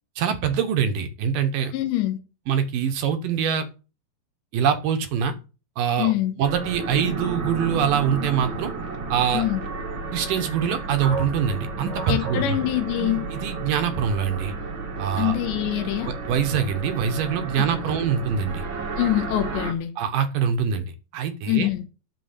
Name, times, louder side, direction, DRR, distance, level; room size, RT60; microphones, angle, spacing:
voice 1, 0.2-1.7 2.5-3.7 4.5-5.3 5.8-6.1 6.4-8.7 9.1-9.4 10.1-12.6 13.3-14.5 15.0-15.3 16.0-18.7 20.0-20.9 21.1-21.7, right 7 dB, 65° right, 2.4 m, -24 dB
voice 2, 1.7-2.2 6.0-6.4 9.3-9.6 12.1-13.3 15.2-16.1 17.6-18.0 19.0-19.9 21.5-21.8, left 14 dB, 85° left, 3.4 m, -25 dB
sound 1, 6.4-19.7, right 3 dB, 45° right, 1.6 m, -32 dB
sound 2, 11.0-13.9 14.2-14.4 15.0-15.5, right 5 dB, 90° right, 5.2 m, -34 dB
12.0 x 4.6 x 8.2 m
omnidirectional pair, 5.0 m